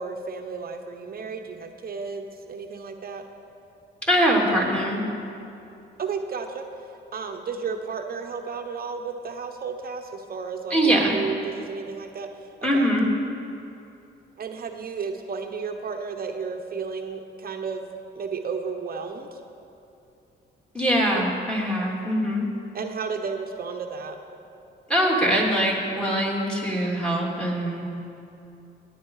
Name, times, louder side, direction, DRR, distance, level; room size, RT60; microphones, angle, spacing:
voice 1, 0.0-3.2 6.0-6.6 7.1-12.3 12.6-12.9 14.4-19.4 21.1-21.2 22.7-24.2, right 5 dB, 50° right, 4 dB, 1.0 m, -33 dB
voice 2, 4.1-5.1 10.7-11.2 12.6-13.1 20.7-22.5 24.9-27.8, equal, 5° left, -2 dB, 3.1 m, -22 dB
18.5 x 9.7 x 4.9 m, 2.7 s
cardioid pair, 90°, 20 cm